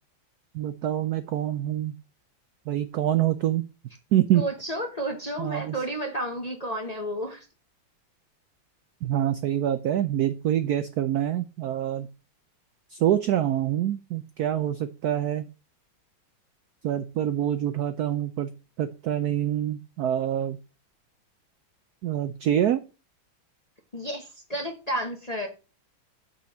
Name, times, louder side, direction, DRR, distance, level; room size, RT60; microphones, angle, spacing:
voice 1, 0.5-1.9 2.7-3.7 4.1-4.4 5.4-5.8 9.0-12.1 12.9-15.5 16.8-18.5 18.8-20.6 22.0-22.8, right 11 dB, 80° right, 11 dB, 0.8 m, -26 dB
voice 2, 4.3-7.5 23.9-25.5, right 1 dB, 30° left, 2 dB, 0.8 m, -31 dB
7.0 x 4.6 x 6.2 m, 0.32 s
omnidirectional pair, 2.3 m